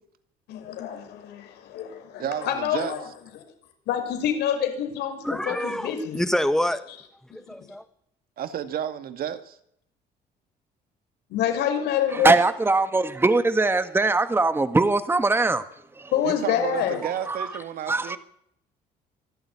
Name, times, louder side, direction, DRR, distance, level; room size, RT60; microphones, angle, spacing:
voice 1, 0.5-3.0 3.9-6.2 11.3-12.4 16.1-17.0, left 9 dB, 80° left, 5.7 m, -27 dB
voice 2, 2.2-2.9 8.4-9.6 16.2-18.2, right 10 dB, 60° right, 2.2 m, -31 dB
voice 3, 5.2-6.8 7.3-7.8, left 1 dB, 5° left, 1.8 m, -26 dB
voice 4, 12.1-15.6 16.0-16.1 17.0-17.5 17.9-18.2, right 3 dB, 15° right, 1.5 m, -21 dB
25.0 x 12.5 x 9.9 m
cardioid pair, 110°, 17 cm